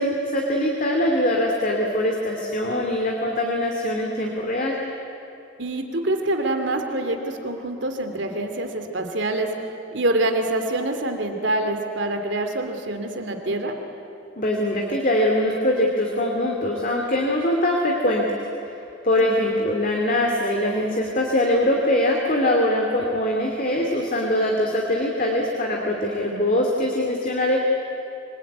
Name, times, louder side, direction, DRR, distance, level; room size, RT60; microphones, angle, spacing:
voice 1, 0.0-4.7 14.4-18.2 18.7-18.8 19.0-27.6, left 1 dB, 45° left, 0 dB, 2.5 m, -22 dB
voice 2, 5.6-9.5 9.9-13.7 19.2-19.3, right 2 dB, 65° right, 4 dB, 2.7 m, -25 dB
26.0 x 21.0 x 9.5 m, 2.8 s
head